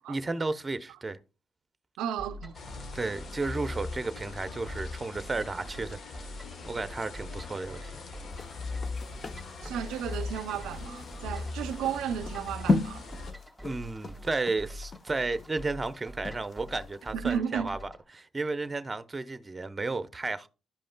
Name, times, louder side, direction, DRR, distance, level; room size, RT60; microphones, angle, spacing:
voice 1, 0.1-1.2 2.9-6.0 6.6-8.0 13.6-20.5, right 3 dB, 20° right, 0.7 m, -33 dB
voice 2, 2.0-2.6 9.6-13.1 17.1-17.7, right 8 dB, 85° right, 0.4 m, -33 dB
sound 1, 2.2-18.0, left 1 dB, 5° left, 1.9 m, -45 dB
sound 2, 2.5-13.3, left 3 dB, 60° left, 1.1 m, -40 dB
sound 3, 8.3-16.9 17.3-17.4, left 3 dB, 35° left, 0.6 m, -35 dB
12.0 x 5.2 x 2.2 m
cardioid pair, 90°, 0 cm